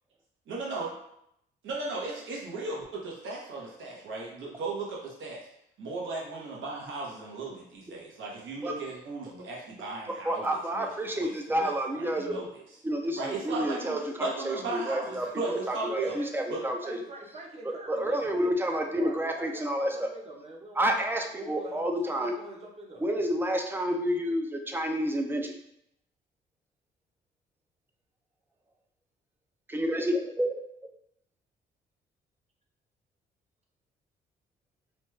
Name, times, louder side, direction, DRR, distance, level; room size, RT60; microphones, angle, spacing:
voice 1, 0.5-0.9 1.6-5.4 5.8-10.4 10.7-10.9 11.1-11.3 11.6-12.6 13.2-16.1 16.5-16.6, right 3 dB, 75° right, -3 dB, 1.0 m, -36 dB
voice 2, 10.2-12.4 12.8-17.0 17.6-20.1 20.8-22.3 23.0-25.6 29.7-30.5, equal, 10° right, 3 dB, 0.4 m, -29 dB
voice 3, 15.8-21.0 21.3-23.0, right 2 dB, 30° right, -2 dB, 0.8 m, -44 dB
3.1 x 2.2 x 3.1 m, 0.76 s
cardioid pair, 90°, 20 cm